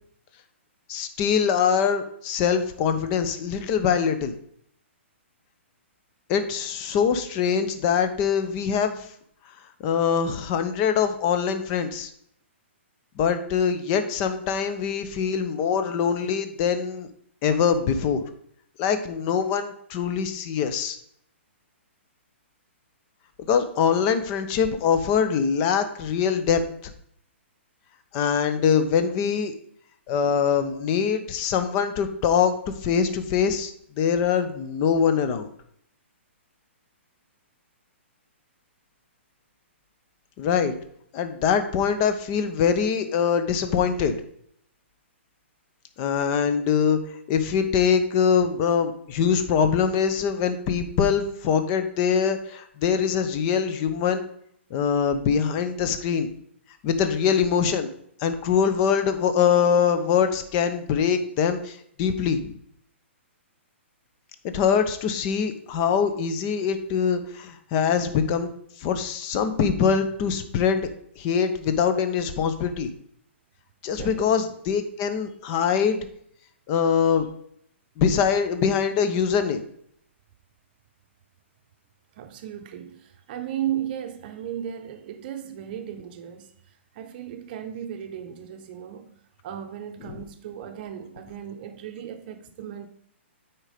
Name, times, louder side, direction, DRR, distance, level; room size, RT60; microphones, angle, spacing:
voice 1, 0.9-4.3 6.3-9.1 9.8-12.1 13.2-17.1 17.4-18.2 18.8-21.0 23.5-26.6 28.1-29.5 30.1-33.7 34.0-35.5 40.4-40.7 41.1-44.2 46.0-47.0 47.3-54.3 54.7-56.3 56.8-57.9 58.2-62.5 64.4-68.5 68.8-70.9 71.2-72.9 73.8-76.0 76.7-77.3 78.0-79.6 90.1-90.2, left 7 dB, 35° left, 0.9 m, -23 dB
voice 2, 73.9-74.3 82.2-86.5 87.0-89.1 89.4-92.9, right 10 dB, 45° right, 0.7 m, -35 dB
8.9 x 4.5 x 5.0 m
hypercardioid pair, 135°, 7 cm